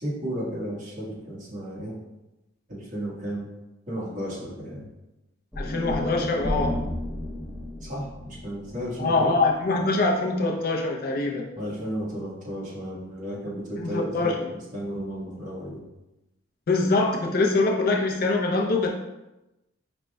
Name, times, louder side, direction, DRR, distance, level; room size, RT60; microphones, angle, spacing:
voice 1, 0.0-2.0 2.7-3.5 3.9-4.9 7.8-9.3 11.5-14.4 14.7-15.8, equal, 45° right, -6 dB, 1.3 m, -33 dB
sound 1, 5.5-9.8, left 1 dB, ahead, 0.5 m, -32 dB
voice 2, 5.6-6.8 9.0-11.5 13.8-14.5 16.7-18.9, left 3 dB, 50° left, 1 dB, 0.5 m, -24 dB
5.1 x 2.2 x 3.3 m, 0.96 s
head